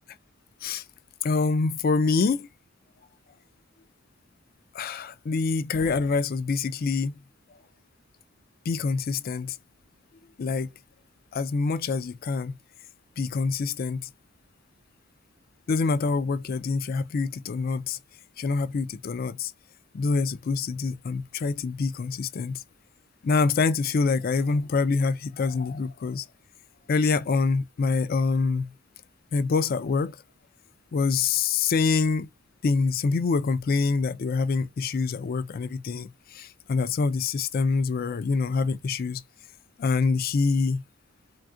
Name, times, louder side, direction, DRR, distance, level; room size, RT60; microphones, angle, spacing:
voice 1, 1.2-2.5 4.7-7.2 8.7-9.6 10.4-10.7 11.3-12.5 13.2-14.1 15.7-18.0 18.4-19.5 19.9-22.6 23.2-26.3 26.9-28.7 29.3-30.2 30.9-32.3 32.6-39.2 39.8-40.8, left 4 dB, 45° left, 0.3 m, -25 dB
3.4 x 2.3 x 2.5 m
head